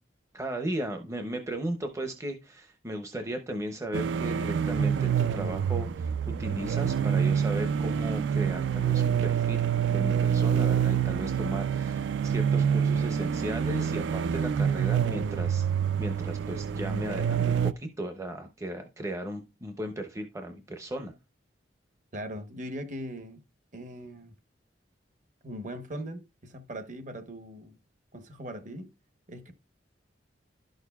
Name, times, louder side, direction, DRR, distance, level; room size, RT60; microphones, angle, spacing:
voice 1, 0.3-15.6 16.0-21.1, right 1 dB, 15° right, 0.6 m, -36 dB
sound 1, 3.9-17.7, right 8 dB, 70° right, 0.3 m, -27 dB
voice 2, 22.1-23.4 23.7-24.3 25.4-27.8 28.1-28.9 29.3-29.5, equal, 45° right, 1.0 m, -40 dB
11.5 x 6.5 x 2.3 m
head